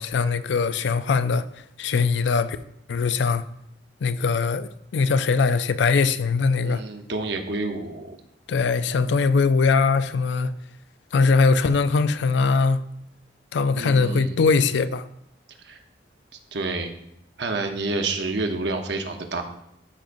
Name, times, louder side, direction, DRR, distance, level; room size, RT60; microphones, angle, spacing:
voice 1, 0.0-1.5 1.8-2.6 2.9-3.4 4.0-6.8 8.5-10.5 11.1-12.8 13.5-15.0, left 4 dB, 70° left, 0.4 m, -21 dB
voice 2, 6.6-8.2 13.7-14.4 15.6-15.8 16.5-16.9 17.4-19.4, right 3 dB, 65° right, 0.9 m, -29 dB
12.5 x 5.2 x 2.6 m
head